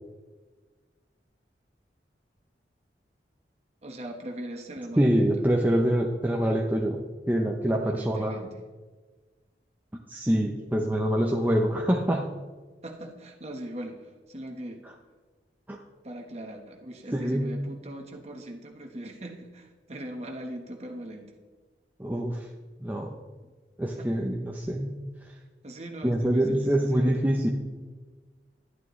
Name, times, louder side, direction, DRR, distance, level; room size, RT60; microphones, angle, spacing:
voice 1, 3.8-5.3 7.7-8.5 12.8-14.8 16.0-21.3 24.0-24.1 25.6-27.3, right 1 dB, 40° right, 3 dB, 1.3 m, -40 dB
voice 2, 5.0-8.4 10.1-12.3 15.7-15.8 17.1-17.6 22.0-22.5 22.8-23.1 23.8-25.0 26.0-27.5, right 1 dB, 10° right, 0 dB, 0.6 m, -25 dB
11.0 x 11.0 x 3.1 m, 1.4 s
head